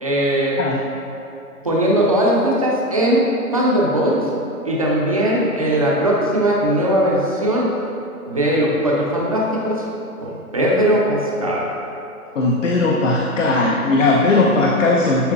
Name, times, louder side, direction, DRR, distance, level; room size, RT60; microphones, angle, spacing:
voice 1, 0.0-0.6 1.6-4.2 4.6-7.7 8.3-9.8 10.2-11.7, right 1 dB, 25° right, -4 dB, 0.7 m, -19 dB
voice 2, 12.3-15.3, left 2 dB, 55° left, -2 dB, 0.8 m, -17 dB
11.0 x 5.4 x 2.4 m, 2.9 s
figure-of-eight pair, 155°, 45 cm